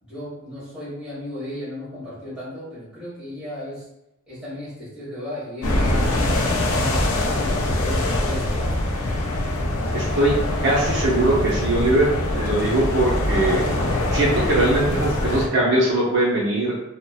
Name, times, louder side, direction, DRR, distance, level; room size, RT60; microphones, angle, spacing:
voice 1, 0.0-3.9 4.3-8.8, left 1 dB, 5° right, -11 dB, 1.4 m, -35 dB
sound 1, 5.6-15.5, left 1 dB, 85° left, 0.4 m, -23 dB
voice 2, 9.9-13.6 13.9-16.7, right 1 dB, 55° right, -6 dB, 0.6 m, -21 dB
3.0 x 2.0 x 2.3 m, 0.86 s
head